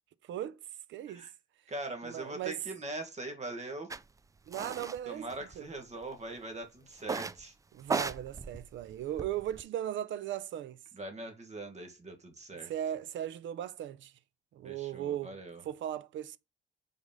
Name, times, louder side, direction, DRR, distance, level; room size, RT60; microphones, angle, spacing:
voice 1, 0.3-0.6 0.9-1.3 2.0-2.6 4.5-5.3 5.6-5.7 7.7-10.8 12.7-14.1 14.5-15.3 15.6-16.4, right 11 dB, 75° right, 0.6 m, -37 dB
voice 2, 1.7-3.9 5.1-7.5 10.9-12.7 14.6-15.6, right 2 dB, 35° right, 1.7 m, -42 dB
sound 1, 3.9-4.0 4.5-5.0 5.3-6.0 7.0-7.4 7.8-9.6, right 4 dB, 15° right, 0.3 m, -37 dB
4.9 x 4.1 x 5.2 m
cardioid pair, 90°, 20 cm